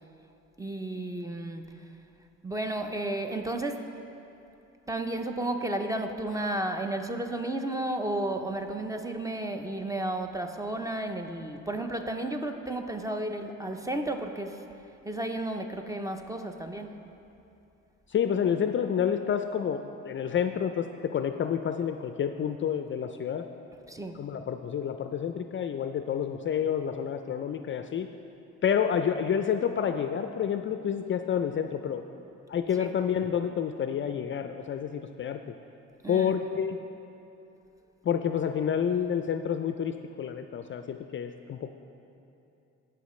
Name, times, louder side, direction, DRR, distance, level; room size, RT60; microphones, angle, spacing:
voice 1, 0.6-1.9 2.4-3.9 4.9-14.6 15.0-17.0 23.9-24.2 32.7-32.9 36.0-36.4, right 1 dB, 10° right, 5 dB, 0.6 m, -33 dB
voice 2, 18.1-23.5 24.2-28.1 28.6-32.0 32.5-35.4 36.1-36.8 38.0-41.7, left 8 dB, 40° left, 8 dB, 0.4 m, -29 dB
17.0 x 5.8 x 3.2 m, 2.8 s
cardioid pair, 90°, 30 cm